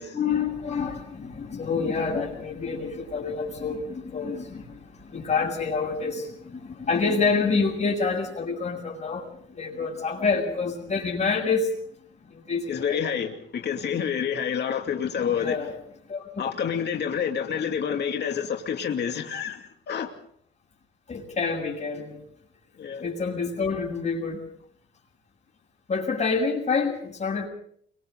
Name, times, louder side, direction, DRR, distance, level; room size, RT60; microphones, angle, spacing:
voice 1, 0.1-11.7 12.3-13.0 15.3-15.7 16.1-16.3 21.1-22.2 23.0-24.4 25.9-27.5, left 4 dB, 35° left, 7.5 m, -27 dB
voice 2, 12.7-15.6 16.4-20.1 22.8-23.0, left 7 dB, 60° left, 2.6 m, -28 dB
29.5 x 23.5 x 4.0 m
cardioid pair, 90°, 20 cm